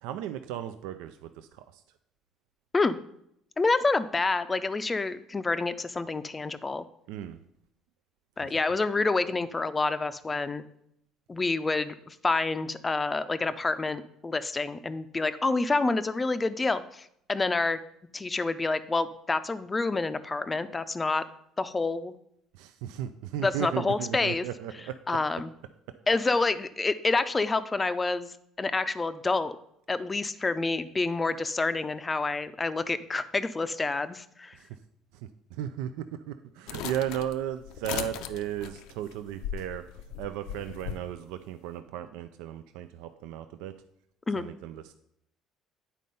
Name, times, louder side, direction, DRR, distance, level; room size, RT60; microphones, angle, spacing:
voice 1, 0.0-1.8 7.1-7.4 8.4-8.5 22.6-25.0 34.6-34.7 35.5-39.8 40.2-43.8 44.4-44.9, right 11 dB, 90° right, 9 dB, 0.4 m, -35 dB
voice 2, 3.6-6.9 8.4-10.6 11.3-17.8 18.1-21.2 21.6-22.1 23.4-24.4 25.1-25.5 26.1-29.6 29.9-34.6 44.3-44.4, left 3 dB, 20° left, 12 dB, 0.4 m, -28 dB
sound 1, 36.7-41.0, left 10 dB, 85° left, 0.5 m, -38 dB
9.2 x 4.2 x 5.4 m, 0.75 s
cardioid pair, 130°, 0 cm